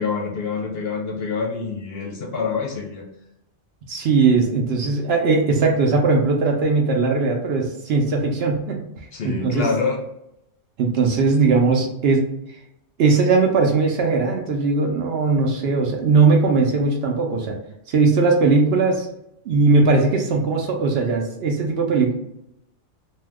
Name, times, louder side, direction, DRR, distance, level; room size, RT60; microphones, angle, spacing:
voice 1, 0.0-3.0 9.1-10.0, left 4 dB, 65° left, 2 dB, 0.7 m, -26 dB
voice 2, 3.9-8.8 9.2-9.7 10.8-12.2 13.0-17.6 17.9-19.1 19.5-22.1, right 4 dB, 65° right, 2 dB, 0.7 m, -19 dB
2.7 x 2.2 x 3.4 m, 0.81 s
omnidirectional pair, 1.2 m